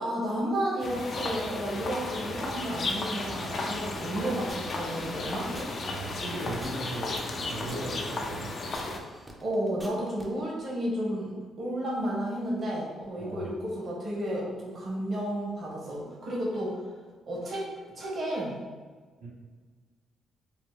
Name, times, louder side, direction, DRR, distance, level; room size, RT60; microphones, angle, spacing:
voice 1, 0.0-5.5 9.4-16.8 17.3-17.7 17.9-18.6, right 1 dB, 45° right, -4 dB, 1.0 m, -32 dB
sound 1, 0.8-9.0, left 2 dB, 50° left, 0.4 m, -34 dB
sound 2, 4.0-10.3, equal, 10° right, 0.5 m, -46 dB
voice 2, 5.7-8.5 13.2-13.5 19.2-19.3, right 2 dB, 85° right, -7 dB, 1.3 m, -38 dB
3.1 x 2.1 x 3.2 m, 1.5 s
cardioid pair, 90°, 0 cm